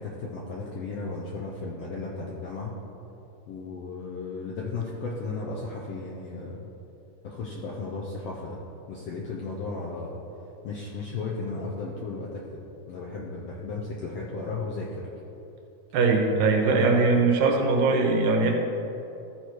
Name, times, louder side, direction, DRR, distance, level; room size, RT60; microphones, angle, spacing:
voice 1, 0.0-2.7 3.5-6.7 7.2-8.6 8.9-10.2 10.6-12.4 12.9-15.0 16.6-16.8, left 3 dB, 75° left, -3 dB, 1.4 m, -35 dB
voice 2, 15.9-18.6, right 3 dB, 80° right, 2 dB, 2.5 m, -21 dB
14.0 x 4.8 x 4.5 m, 3.0 s
omnidirectional pair, 3.8 m